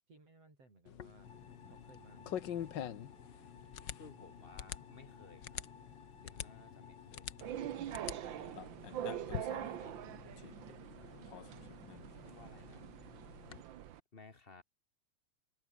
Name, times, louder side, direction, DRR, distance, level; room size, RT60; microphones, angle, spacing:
voice 1, 0.1-1.3 1.7-3.0, right 2 dB, 50° right, 8.9 m, -62 dB
sound 1, 0.9-13.6, left 10 dB, 65° left, 1.1 m, -47 dB
sound 2, 1.2-7.5, left 5 dB, 45° left, 4.2 m, -58 dB
voice 2, 3.8-5.8 6.2-7.3 7.7-8.7 9.8-10.4 11.0-11.7 12.2-12.9 14.1-14.6, left 3 dB, 30° left, 1.2 m, -58 dB
sound 3, 7.4-14.0, right 11 dB, 80° right, 1.0 m, -44 dB
omnidirectional pair, 3.5 m